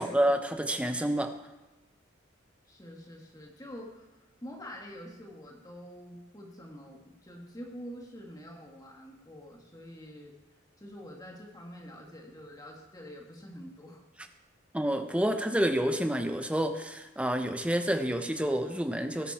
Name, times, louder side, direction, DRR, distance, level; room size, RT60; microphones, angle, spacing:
voice 1, 0.0-1.3 14.7-19.3, right 1 dB, 5° right, 6 dB, 0.9 m, -28 dB
voice 2, 2.7-10.4 10.8-14.0, equal, 20° left, 0 dB, 2.2 m, -46 dB
19.5 x 12.0 x 4.4 m, 1.0 s
head